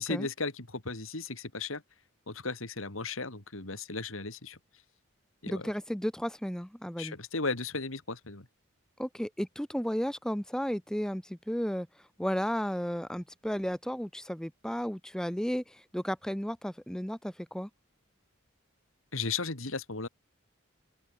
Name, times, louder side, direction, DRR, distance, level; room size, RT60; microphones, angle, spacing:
voice 1, 0.0-1.8 2.3-4.6 5.4-5.7 7.0-8.5 19.1-20.1, left 4 dB, 85° left, 3.1 m, -35 dB
voice 2, 5.5-7.2 9.0-11.9 12.2-17.7, equal, 5° left, 0.6 m, -33 dB
open air
head